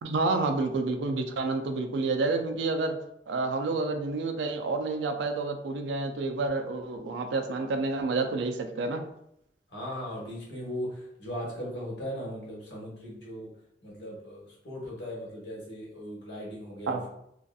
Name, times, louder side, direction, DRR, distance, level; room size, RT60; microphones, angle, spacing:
voice 1, 0.0-3.0 3.3-9.0 16.9-17.0, right 3 dB, 85° right, 6 dB, 0.4 m, -29 dB
voice 2, 9.7-13.5 13.8-17.0, equal, 80° left, -5 dB, 1.1 m, -38 dB
2.6 x 2.5 x 2.3 m, 0.77 s
head